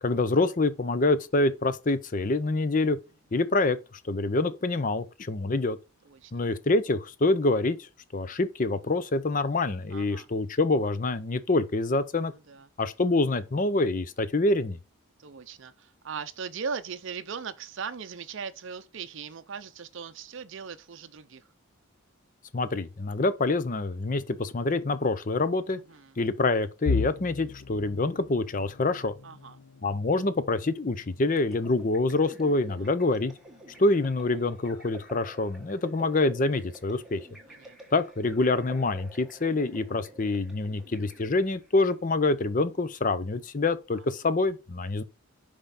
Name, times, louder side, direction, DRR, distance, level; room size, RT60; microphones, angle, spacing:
voice 1, 0.0-3.0 3.3-3.8 4.0-5.8 6.3-12.3 12.8-14.8 22.5-25.8 26.2-29.1 29.8-33.3 33.8-37.3 37.9-45.0, left 2 dB, 35° left, 0.6 m, -26 dB
voice 2, 6.1-6.4 9.9-10.3 12.5-12.7 15.2-21.4 25.7-26.1 29.2-29.6 32.8-32.9 37.5-37.8 44.0-44.1, right 6 dB, 55° right, 0.5 m, -39 dB
sound 1, 26.8-38.7 39.1-39.4 39.7-39.9 40.8-41.2, left 4 dB, 80° left, 0.7 m, -40 dB
sound 2, 31.4-41.8, right 1 dB, ahead, 1.3 m, -49 dB
5.6 x 5.1 x 4.0 m
head